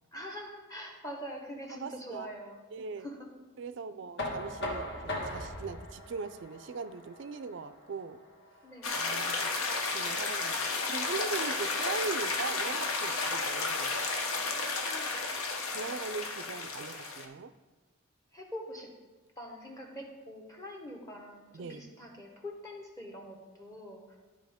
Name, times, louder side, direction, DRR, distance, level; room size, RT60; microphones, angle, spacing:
voice 1, 0.1-2.6 3.0-3.3 8.6-9.0 14.3-15.1 18.3-18.9 19.4-24.2, equal, 15° left, 1 dB, 1.1 m, -44 dB
voice 2, 1.7-2.3 2.7-3.1 3.6-8.2 8.9-9.5 9.9-13.9 15.7-17.5 21.5-21.9, right 4 dB, 55° right, 13 dB, 0.4 m, -40 dB
Knock, 4.2-10.0, left 1 dB, 55° left, 1.3 m, -40 dB
sound 1, 8.8-17.2, left 3 dB, 85° left, 0.9 m, -32 dB
12.5 x 4.7 x 3.6 m, 1.2 s
head